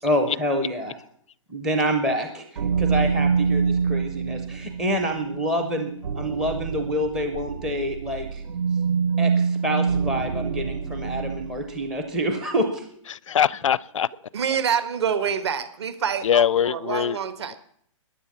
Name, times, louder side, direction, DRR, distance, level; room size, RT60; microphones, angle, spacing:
voice 1, 0.0-0.9 1.5-8.4 9.2-12.9, equal, 5° right, 5 dB, 0.5 m, -27 dB
sound 1, 2.6-11.7, right 5 dB, 75° right, 0.8 m, -26 dB
voice 2, 13.1-14.1 16.2-17.2 17.5-17.6, left 9 dB, 70° left, 23 dB, 0.5 m, -22 dB
voice 3, 14.3-17.5, right 7 dB, 55° right, 12 dB, 1.5 m, -26 dB
14.5 x 10.0 x 7.0 m, 0.65 s
hypercardioid pair, 175°, 17 cm